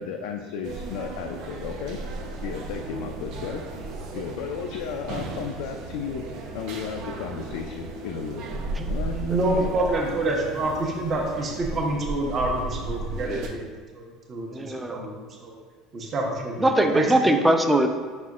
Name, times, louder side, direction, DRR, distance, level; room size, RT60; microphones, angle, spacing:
voice 1, 0.0-2.0 2.4-3.6 4.1-6.2 6.5-9.2 9.6-9.8, left 7 dB, 80° left, 3 dB, 0.3 m, -34 dB
sound 1, 0.6-13.5, right 2 dB, 70° right, 0.6 m, -35 dB
voice 2, 9.1-13.7 14.0-14.5 14.9-15.5 15.9-17.1, right 2 dB, 35° right, 0 dB, 0.9 m, -27 dB
voice 3, 13.1-13.5 14.5-15.0 16.6-17.9, right 1 dB, 10° right, 6 dB, 0.4 m, -21 dB
5.1 x 4.2 x 2.4 m, 1.5 s
supercardioid pair, 115°, 0 cm